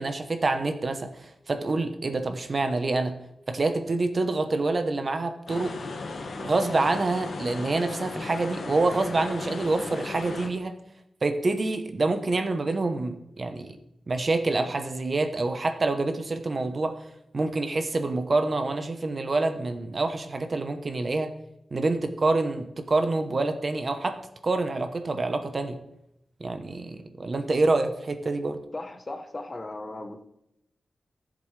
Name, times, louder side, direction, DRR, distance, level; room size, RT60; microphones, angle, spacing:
voice 1, 0.0-3.1 3.5-5.7 6.4-10.7 11.2-13.8 14.1-16.9 17.3-21.3 21.7-24.2 24.4-25.8 26.4-28.6, right 3 dB, 40° right, 7 dB, 0.9 m, -27 dB
sound 1, 5.5-10.5, left 3 dB, 65° left, 1.3 m, -36 dB
voice 2, 28.7-30.3, left 2 dB, 30° left, 6 dB, 0.9 m, -37 dB
17.0 x 7.6 x 3.3 m, 0.82 s
wide cardioid pair, 160°, 0 cm